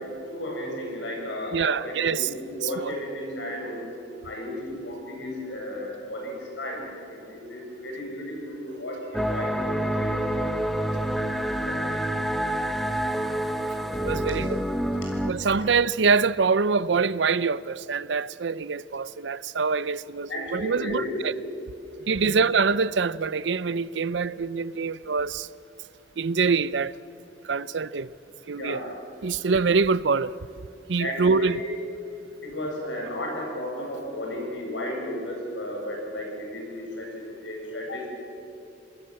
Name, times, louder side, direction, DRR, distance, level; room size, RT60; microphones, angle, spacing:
voice 1, 0.3-3.9 4.2-11.0 11.6-12.0 15.5-15.7 20.3-21.1 22.0-22.4 24.0-24.4 24.7-24.9 28.5-28.9 31.0-31.9 32.4-38.1, left 1 dB, 80° left, 7.6 m, -34 dB
voice 2, 1.5-2.3 2.8-2.9 14.0-14.6 15.2-21.3 22.1-25.5 26.2-26.9 27.4-28.1 28.5-28.8 29.2-30.3 30.9-31.6, right 5 dB, 70° right, 0.6 m, -25 dB
sound 1, 9.1-15.3, equal, ahead, 1.1 m, -27 dB
27.0 x 20.0 x 7.7 m
head